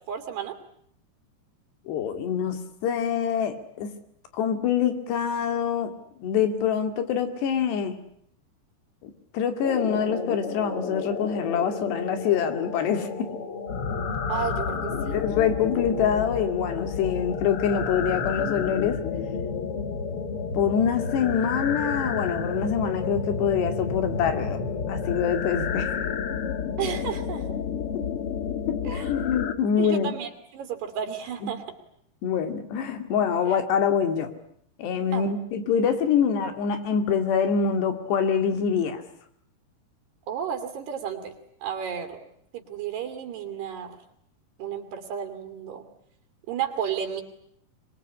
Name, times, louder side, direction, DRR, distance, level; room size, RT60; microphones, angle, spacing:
voice 1, 0.1-0.6 14.3-15.3 26.8-27.5 28.8-29.1 29.8-31.6 33.5-33.6 35.1-35.3 40.3-41.3 41.6-42.2 42.5-44.0 44.6-45.9 46.5-47.2, right 8 dB, 75° right, 6 dB, 4.6 m, -32 dB
voice 2, 1.9-3.9 4.3-5.9 6.2-8.0 9.0-13.3 14.9-19.0 20.5-24.6 24.9-25.9 28.7-30.2 32.2-34.3 34.8-39.0, left 7 dB, 80° left, 8 dB, 4.5 m, -25 dB
sound 1, 9.6-29.5, left 6 dB, 50° left, 1.8 m, -30 dB
25.0 x 22.0 x 9.8 m, 0.68 s
omnidirectional pair, 4.8 m